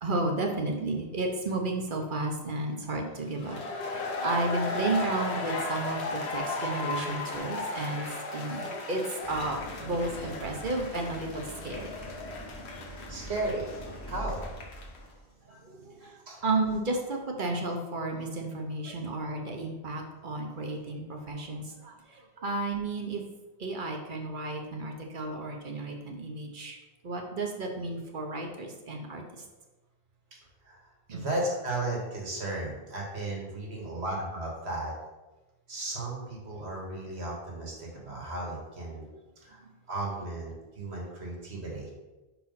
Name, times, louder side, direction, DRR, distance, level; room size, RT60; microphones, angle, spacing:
voice 1, 0.0-8.0 8.3-11.9 15.8-16.1 16.4-21.9 22.4-23.2 23.6-26.8 27.0-29.2 31.1-31.2, right 2 dB, 55° right, 2 dB, 1.0 m, -32 dB
sound 1, 3.3-15.0, left 2 dB, 90° left, 1.2 m, -36 dB
Idling, 9.2-15.3, equal, 15° left, 1.0 m, -43 dB
voice 2, 13.1-14.4 15.5-16.4 18.8-19.0 22.4-22.5 30.6-30.8 31.1-34.9 35.7-39.1 39.4-39.6 39.9-41.9, right 2 dB, 90° right, -2 dB, 1.9 m, -35 dB
5.3 x 4.3 x 5.7 m, 1.1 s
omnidirectional pair, 1.1 m